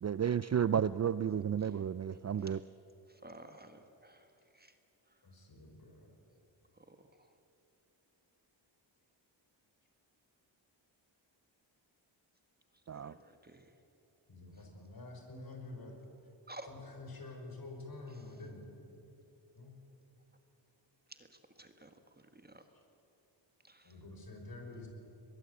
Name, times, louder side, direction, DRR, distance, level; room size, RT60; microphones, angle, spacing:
voice 1, 0.0-2.6 12.9-13.1, right 8 dB, 35° right, 15 dB, 0.4 m, -32 dB
voice 2, 3.2-4.2 13.0-13.2 13.4-13.6 16.5-16.7 21.6-21.9 22.5-22.6 23.7-23.8, right 1 dB, 20° right, 6 dB, 1.6 m, -51 dB
voice 3, 5.2-6.1 14.3-16.0 16.6-18.6 19.5-19.7 23.8-24.9, left 2 dB, 50° left, 2 dB, 5.7 m, -48 dB
22.5 x 20.5 x 8.4 m, 3.0 s
cardioid pair, 85°, 46 cm